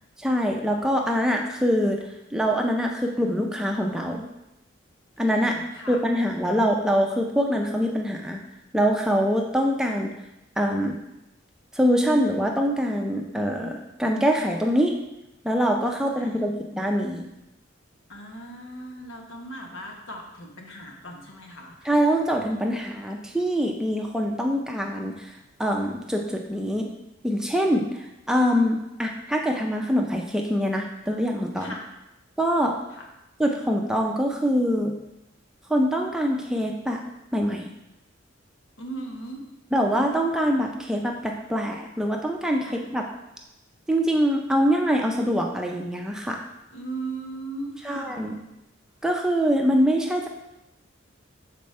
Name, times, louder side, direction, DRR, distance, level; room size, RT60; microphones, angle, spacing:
voice 1, 0.2-2.0 2.3-4.2 5.2-5.5 5.9-8.4 8.7-10.1 10.6-10.9 11.7-14.9 15.4-17.2 21.8-26.9 27.2-28.0 28.3-31.8 32.4-32.7 33.4-34.9 35.7-37.0 37.3-37.7 39.7-43.1 43.9-46.4 47.8-48.4 49.0-50.3, equal, 5° right, 1 dB, 0.4 m, -24 dB
voice 2, 5.3-6.0 16.2-16.3 18.1-21.7 31.6-31.8 38.8-39.4 42.6-42.7 46.7-48.3, right 2 dB, 80° left, 1 dB, 1.1 m, -37 dB
6.9 x 4.3 x 3.2 m, 0.90 s
head